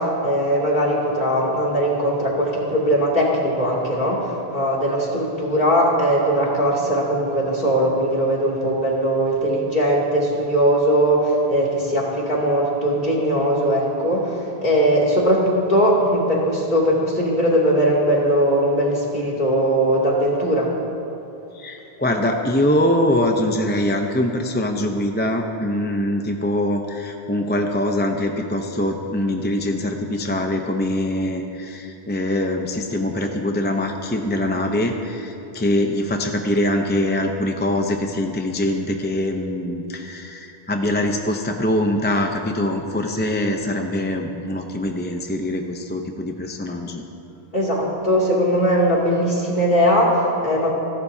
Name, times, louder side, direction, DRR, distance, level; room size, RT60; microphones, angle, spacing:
voice 1, 0.0-20.7 47.5-50.7, equal, 50° left, -5 dB, 3.0 m, -20 dB
voice 2, 21.5-47.0, left 1 dB, 10° left, 3 dB, 0.7 m, -23 dB
28.5 x 12.0 x 2.8 m, 2.7 s
omnidirectional pair, 1.0 m